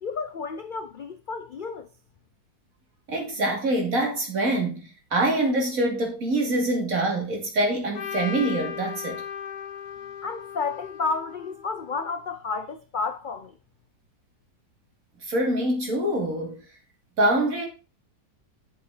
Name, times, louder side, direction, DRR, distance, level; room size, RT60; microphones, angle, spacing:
voice 1, 0.0-1.9 10.2-13.6, left 4 dB, 65° left, 0.4 m, -31 dB
voice 2, 3.1-9.2 15.2-16.6 17.2-17.7, right 1 dB, 60° right, 3.0 m, -25 dB
Trumpet, 7.9-12.1, left 8 dB, 85° left, 1.5 m, -37 dB
8.3 x 7.5 x 3.8 m
omnidirectional pair, 1.6 m